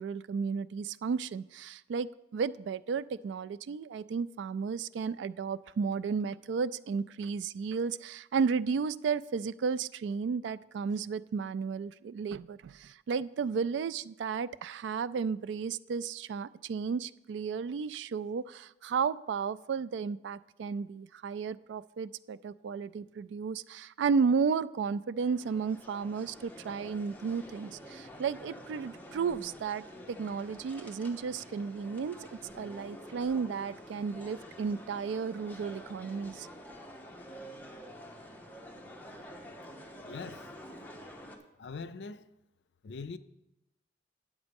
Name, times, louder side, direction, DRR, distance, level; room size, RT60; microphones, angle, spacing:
voice 1, 0.0-36.5, right 5 dB, 80° right, 0.3 m, -33 dB
sound 1, 25.2-41.4, equal, 10° left, 0.9 m, -48 dB
voice 2, 40.0-40.5 41.6-42.2 42.8-43.2, left 4 dB, 75° left, 0.4 m, -41 dB
9.6 x 7.2 x 5.2 m
head